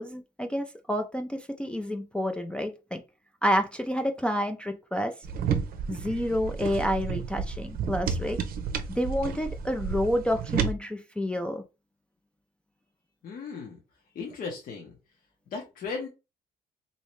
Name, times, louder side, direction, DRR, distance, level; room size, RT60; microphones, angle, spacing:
voice 1, 0.0-3.0 3.4-5.1 5.9-8.4 8.9-11.6, equal, 5° left, 4 dB, 0.3 m, -29 dB
sound 1, 5.2-10.7, right 6 dB, 70° right, 0.6 m, -31 dB
voice 2, 13.2-13.8 14.1-14.9 15.5-16.1, left 5 dB, 65° left, 0 dB, 0.8 m, -36 dB
3.1 x 2.7 x 3.1 m, 0.29 s
cardioid pair, 105°, 15 cm